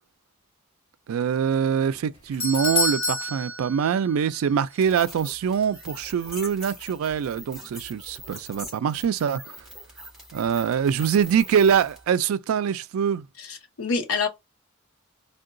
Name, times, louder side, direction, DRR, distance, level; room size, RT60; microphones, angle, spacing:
voice 1, 1.1-9.6 10.3-13.3, right 7 dB, 75° right, 0.3 m, -24 dB
Doorbell, 1.9-4.4 4.7-4.8 5.5-5.6, left 2 dB, 25° left, 1.3 m, -28 dB
sound 1, 4.8-12.0, equal, ahead, 1.7 m, -43 dB
voice 2, 13.4-14.3, left 4 dB, 85° left, 0.7 m, -27 dB
3.7 x 2.2 x 2.5 m
head